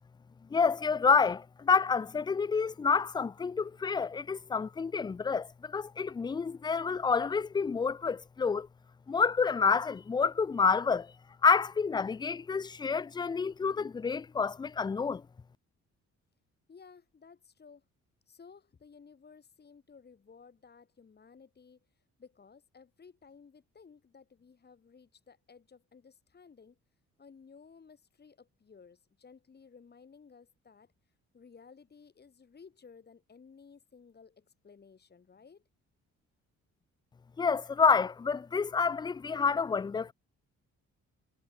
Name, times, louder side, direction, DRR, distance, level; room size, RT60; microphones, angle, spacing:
voice 1, 0.5-8.7 9.1-11.1 11.4-15.2 37.4-40.1, left 5 dB, 15° left, 0.3 m, -28 dB
voice 2, 16.7-17.9 18.3-26.8 27.2-35.6, left 5 dB, 35° left, 2.0 m, -56 dB
cardioid pair, 90°, 30 cm